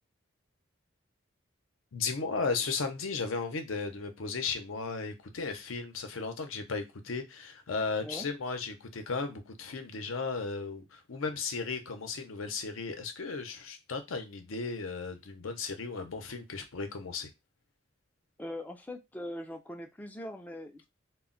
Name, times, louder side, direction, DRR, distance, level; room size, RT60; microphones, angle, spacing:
voice 1, 1.9-17.3, left 4 dB, 80° left, 0.6 m, -35 dB
voice 2, 18.4-20.9, left 1 dB, 10° left, 0.3 m, -41 dB
2.2 x 2.1 x 3.7 m
head